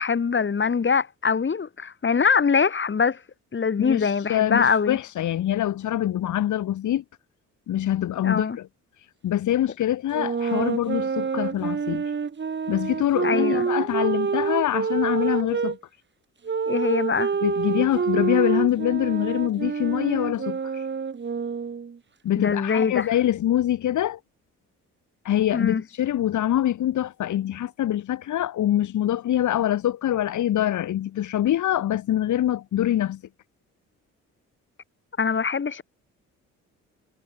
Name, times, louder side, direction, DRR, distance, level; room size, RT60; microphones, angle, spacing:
voice 1, 0.0-3.2 3.5-5.0 8.2-8.6 13.2-13.7 16.7-17.3 22.4-23.1 25.5-25.8 35.2-35.8, left 5 dB, 40° left, 8.0 m, -23 dB
voice 2, 3.8-7.0 7.7-8.7 9.0-12.2 12.7-15.8 17.4-20.9 22.2-24.2 25.3-33.2, left 12 dB, 75° left, 6.8 m, -24 dB
sound 1, 10.1-15.7 16.4-22.0, right 6 dB, 35° right, 3.4 m, -27 dB
cardioid pair, 90°, 30 cm